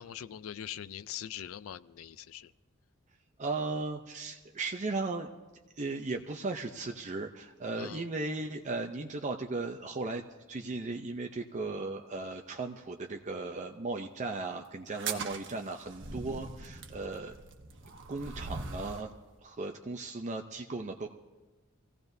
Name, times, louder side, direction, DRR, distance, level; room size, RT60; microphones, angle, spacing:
voice 1, 0.0-2.5 7.8-8.1 15.1-15.3, left 10 dB, 80° left, 15 dB, 0.4 m, -43 dB
voice 2, 3.4-5.3 5.8-10.2 10.5-17.3 18.1-19.1 19.4-21.1, right 3 dB, 35° right, 4 dB, 0.6 m, -36 dB
sound 1, 14.9-19.1, right 4 dB, 65° right, 1.1 m, -41 dB
25.0 x 16.5 x 2.7 m, 1.2 s
head